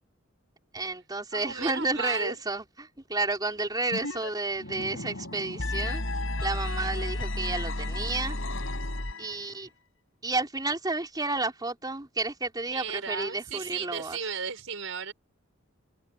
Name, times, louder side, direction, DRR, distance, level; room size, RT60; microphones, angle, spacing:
voice 1, 0.7-6.0 6.4-8.4 9.2-9.7 10.2-14.2, right 3 dB, 20° right, 4.1 m, -31 dB
voice 2, 1.3-2.4 12.7-15.1, right 6 dB, 75° right, 5.6 m, -35 dB
sound 1, 3.9-4.3 4.6-9.5, left 1 dB, 75° left, 5.5 m, -33 dB
head